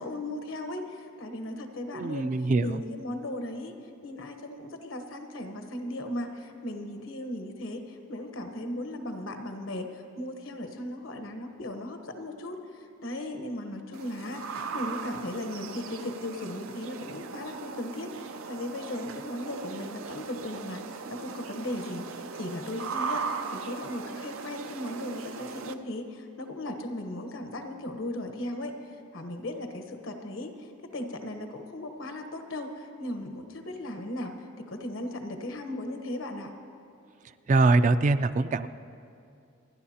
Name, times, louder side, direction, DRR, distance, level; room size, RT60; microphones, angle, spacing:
voice 1, 0.0-2.3 2.6-3.7 4.0-28.7 29.1-30.7 30.9-36.5, left 1 dB, 80° left, 6 dB, 1.1 m, -37 dB
voice 2, 1.9-2.8 37.5-38.7, right 3 dB, 40° right, 12 dB, 0.3 m, -23 dB
sound 1, 13.9-25.7, right 5 dB, 90° right, 0.5 m, -38 dB
28.0 x 10.5 x 2.8 m, 2.5 s
head